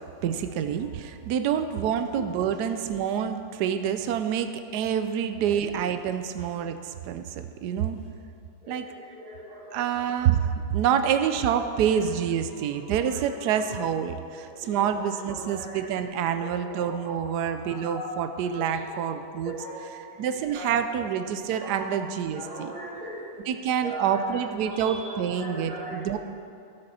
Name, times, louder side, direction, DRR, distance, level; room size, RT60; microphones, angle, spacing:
voice 1, 0.2-8.0 8.7-8.9 9.7-19.5 20.2-22.7 23.5-26.2, right 8 dB, 80° right, 9 dB, 1.2 m, -27 dB
voice 2, 8.6-10.1 11.8-12.0 12.8-13.2 13.5-13.8 14.4-15.9 16.4-18.1 18.6-19.1 19.4-20.3 20.5-21.1 21.5-21.9 22.3-23.3 23.8-26.1, right 1 dB, 50° right, -6 dB, 2.3 m, -40 dB
17.5 x 6.7 x 4.2 m, 2.6 s
omnidirectional pair, 1.8 m